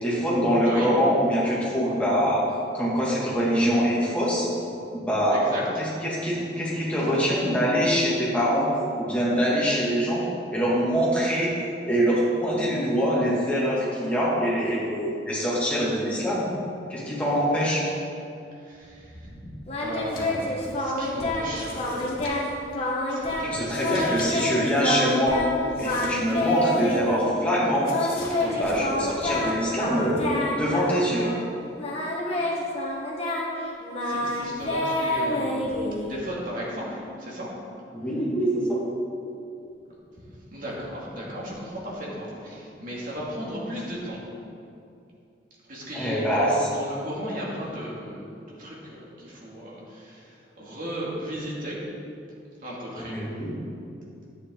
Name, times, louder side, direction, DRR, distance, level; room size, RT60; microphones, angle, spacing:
voice 1, 0.0-2.4 2.7-4.5 4.9-5.4 5.8-8.7 9.0-10.2 10.5-11.5 11.9-16.5 16.9-17.9 23.4-25.4 25.8-28.1 28.6-30.2 30.5-31.3 37.9-38.8 45.9-46.7 53.1-53.5, equal, 10° left, -7 dB, 2.3 m, -24 dB
voice 2, 5.3-5.6 18.5-22.4 22.7-24.2 28.4-28.7 34.0-35.6 36.0-37.5 40.5-44.2 45.6-51.8 52.6-53.2, equal, 50° right, -5 dB, 2.6 m, -36 dB
Singing, 19.7-21.5 21.8-22.5 22.7-25.5 25.8-27.3 27.9-31.5 31.8-36.2, left 1 dB, 35° left, 1.5 m, -28 dB
sound 1, 20.0-20.4 20.8-20.9 21.5-22.6 23.5-24.3 24.6-24.7 25.7-26.8 27.8-28.4, left 3 dB, 55° left, 2.1 m, -42 dB
10.5 x 9.0 x 4.0 m, 2.5 s
head